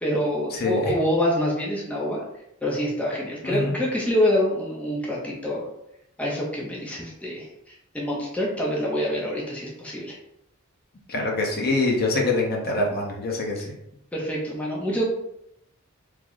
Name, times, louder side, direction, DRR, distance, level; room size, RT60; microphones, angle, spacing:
voice 1, 0.0-2.2 2.6-5.7 6.2-10.2 14.1-15.0, equal, 5° left, -4 dB, 0.5 m, -26 dB
voice 2, 3.4-3.8 11.1-13.6, left 2 dB, 45° left, 0 dB, 0.7 m, -24 dB
3.1 x 2.0 x 3.7 m, 0.81 s
head